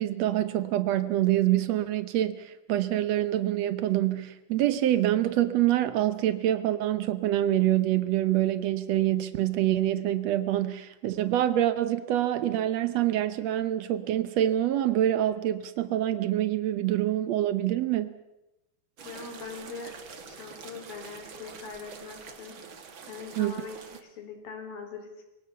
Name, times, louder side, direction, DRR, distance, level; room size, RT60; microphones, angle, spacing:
voice 1, 0.0-18.1 23.4-23.6, right 13 dB, 85° right, 11 dB, 1.4 m, -26 dB
voice 2, 19.0-19.9 20.2-22.6 23.1-25.2, left 5 dB, 65° left, 5 dB, 5.7 m, -42 dB
sound 1, 19.0-24.0, right 5 dB, 45° right, 1.8 m, -46 dB
26.5 x 22.0 x 7.0 m, 0.97 s
omnidirectional pair, 4.4 m